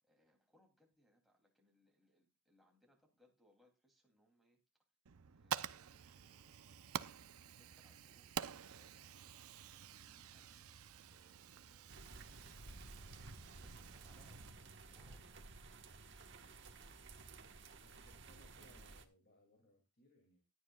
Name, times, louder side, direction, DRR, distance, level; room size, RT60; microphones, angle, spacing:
voice 1, 0.0-4.6 5.3-6.8 7.5-8.4 8.7-9.3 10.1-12.0 13.5-15.5, equal, ahead, 0 dB, 2.8 m, -74 dB
Fire, 5.1-14.5, right 8 dB, 75° right, 0.6 m, -49 dB
sound 1, 11.9-19.1, right 3 dB, 50° right, 1.3 m, -55 dB
voice 2, 17.8-20.4, left 1 dB, 45° left, 2 dB, 2.6 m, -68 dB
16.5 x 11.0 x 2.3 m, 0.26 s
head